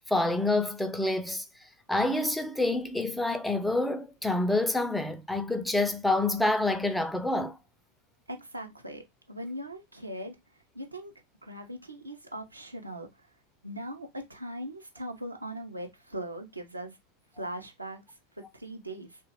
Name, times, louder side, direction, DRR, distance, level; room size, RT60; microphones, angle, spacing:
voice 1, 0.1-1.4 1.9-7.6, left 2 dB, 5° left, 0.4 m, -27 dB
voice 2, 8.3-9.0 9.3-10.4 10.7-11.1 11.4-13.1 13.6-17.0 17.4-18.0 18.5-19.2, right 1 dB, 85° right, 0.6 m, -39 dB
2.9 x 2.2 x 3.0 m
figure-of-eight pair, 90°, 0 cm